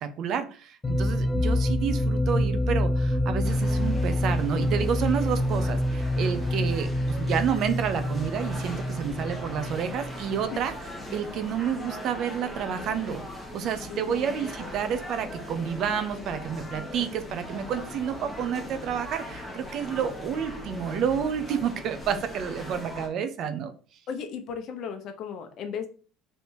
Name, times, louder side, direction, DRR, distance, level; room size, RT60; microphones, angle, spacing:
voice 1, 0.0-10.7 11.1-13.2 13.5-23.7, right 7 dB, 50° right, 10 dB, 0.6 m, -29 dB
sound 1, 0.8-10.5, left 1 dB, 15° left, 0.5 m, -27 dB
sound 2, 3.4-23.1, left 1 dB, ahead, 1.1 m, -40 dB
voice 2, 13.9-14.3 24.1-25.9, left 7 dB, 50° left, 7 dB, 0.8 m, -35 dB
3.4 x 2.8 x 4.5 m, 0.39 s
cardioid pair, 130°, 0 cm